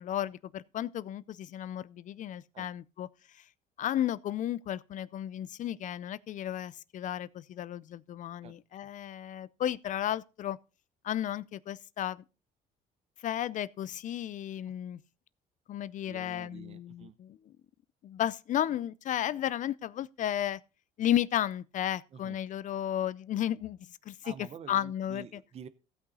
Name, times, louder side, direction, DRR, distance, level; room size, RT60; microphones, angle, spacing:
voice 1, 0.0-3.1 3.3-3.4 3.8-10.6 11.0-12.2 13.2-15.0 15.7-17.6 18.0-20.6 21.0-24.3 24.7-25.3, left 11 dB, 50° left, 0.4 m, -33 dB
voice 2, 16.0-17.2 22.1-22.4 24.2-25.7, right 8 dB, 40° right, 0.6 m, -48 dB
15.5 x 5.6 x 4.0 m
cardioid pair, 110°, 17 cm